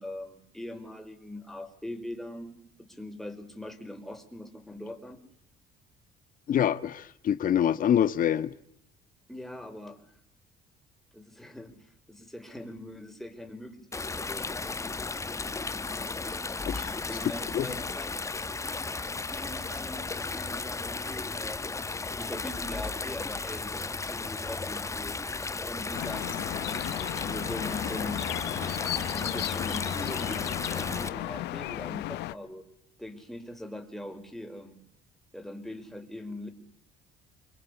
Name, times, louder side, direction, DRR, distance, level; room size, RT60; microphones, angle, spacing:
voice 1, 0.0-5.2 9.3-10.1 11.1-14.4 17.1-18.1 19.2-21.8 22.1-25.2 25.6-26.8 27.2-28.3 29.1-32.6 33.0-34.8 35.3-36.5, left 1 dB, ahead, 5.5 m, -41 dB
voice 2, 6.5-8.5 16.7-16.9 17.5-17.7, left 9 dB, 55° left, 1.6 m, -25 dB
Stream, 13.9-31.1, left 3 dB, 20° left, 1.1 m, -34 dB
sound 1, 25.9-32.3, left 16 dB, 85° left, 1.1 m, -35 dB
29.0 x 23.0 x 8.5 m
cardioid pair, 110°, 17 cm